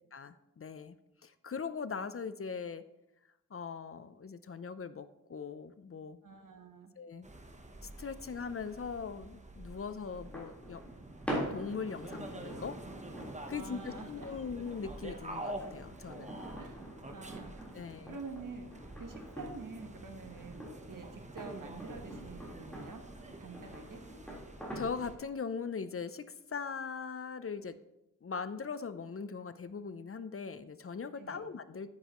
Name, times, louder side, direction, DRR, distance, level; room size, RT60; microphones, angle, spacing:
voice 1, 0.1-1.0 1.2-2.8 3.5-6.2 7.0-7.3 7.8-10.9 11.5-12.8 13.5-16.4 17.7-18.2 24.7-27.8 28.2-31.9, left 5 dB, 45° left, 13 dB, 0.5 m, -40 dB
voice 2, 6.2-6.9 9.7-9.8 13.5-14.3 16.6-16.8 17.1-18.7 19.0-23.0 23.4-24.0 31.2-31.4, right 4 dB, 85° right, 5 dB, 1.3 m, -47 dB
sound 1, 7.2-25.2, right 1 dB, 25° right, 0.9 m, -48 dB
sound 2, 10.1-25.1, equal, 5° left, 3.9 m, -45 dB
10.5 x 9.5 x 3.0 m, 0.88 s
wide cardioid pair, 95°, 31 cm